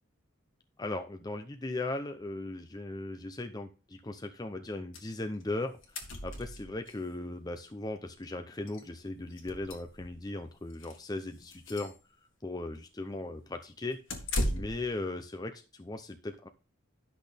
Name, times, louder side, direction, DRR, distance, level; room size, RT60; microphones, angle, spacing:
voice 1, 0.8-5.7 6.2-11.9 12.4-14.0 14.5-16.5, left 2 dB, 20° left, 6 dB, 0.7 m, -38 dB
sound 1, 4.9-5.1 5.4-5.5 5.7-7.0 8.2-8.3 8.7-8.8 9.3-10.3 10.7-11.0 11.4-12.0 14.1-14.9, left 1 dB, 70° left, 1.7 m, -36 dB
10.5 x 6.1 x 3.4 m, 0.32 s
head